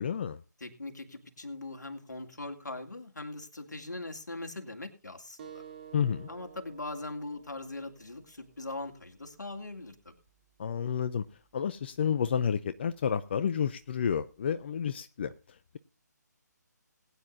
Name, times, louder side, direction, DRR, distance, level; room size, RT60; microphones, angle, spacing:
voice 1, 0.0-0.4 5.9-6.3 10.6-11.3 11.5-15.8, left 7 dB, 35° left, 0.5 m, -30 dB
voice 2, 0.6-5.6 6.3-10.1, left 2 dB, 70° left, 2.7 m, -41 dB
sound 1, 5.4-10.5, right 8 dB, 35° right, 3.1 m, -53 dB
21.0 x 9.6 x 2.6 m
figure-of-eight pair, 150°, 10 cm